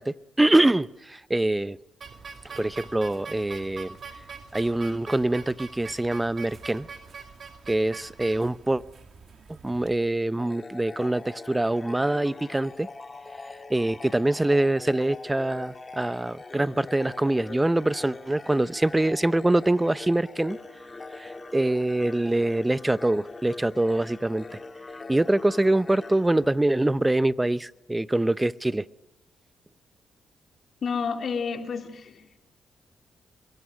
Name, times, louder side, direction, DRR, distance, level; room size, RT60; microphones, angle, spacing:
voice 1, 0.0-1.8 2.4-4.0 4.5-6.9 7.7-8.8 9.5-12.9 13.7-20.6 21.1-24.5 25.1-28.9, right 1 dB, 15° right, 0.7 m, -24 dB
sound 1, 2.0-9.9, right 5 dB, 50° right, 2.6 m, -43 dB
sound 2, 10.4-27.1, left 3 dB, 30° left, 2.1 m, -43 dB
voice 2, 30.8-32.3, left 5 dB, 60° left, 3.2 m, -30 dB
26.5 x 23.0 x 6.3 m
cardioid pair, 65°, 0 cm